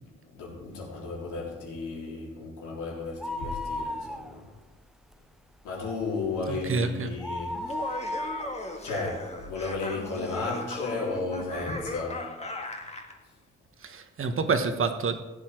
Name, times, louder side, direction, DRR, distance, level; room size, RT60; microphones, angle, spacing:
voice 1, 0.3-4.5 5.6-8.0 8.8-12.4, left 3 dB, 85° left, -3 dB, 4.0 m, -34 dB
sound 1, 3.1-4.7 5.0-5.1 5.6-10.0 10.5-10.6 11.4-11.5 11.7-11.8, left 1 dB, ahead, 0.4 m, -36 dB
voice 2, 6.5-7.1 13.8-15.2, right 4 dB, 45° right, 8 dB, 1.4 m, -28 dB
Laughter, 7.6-13.1, left 2 dB, 20° left, 1.6 m, -37 dB
15.5 x 8.4 x 4.7 m, 1.1 s
cardioid pair, 90°, 30 cm